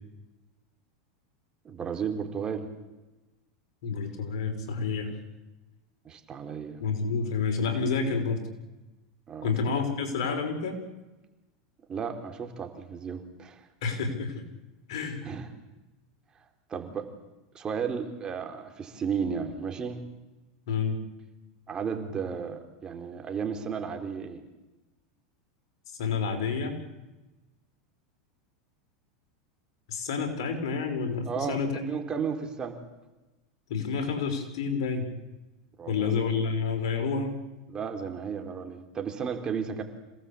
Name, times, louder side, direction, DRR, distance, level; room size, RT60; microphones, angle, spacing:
voice 1, 1.6-2.7 6.0-6.8 9.3-9.6 11.9-13.6 15.2-15.5 16.7-17.1 17.5-20.0 21.7-24.4 31.3-31.6 31.9-32.8 35.8-36.1 37.7-39.8, right 6 dB, 30° right, 5 dB, 4.1 m, -33 dB
voice 2, 3.8-5.1 6.8-8.4 9.4-10.8 13.8-14.4 14.9-15.2 20.7-21.0 26.0-26.8 29.9-31.9 33.7-35.1 35.9-37.4, left 5 dB, 70° left, 6 dB, 5.5 m, -29 dB
27.0 x 18.5 x 8.6 m, 1.1 s
hypercardioid pair, 100°, 3 cm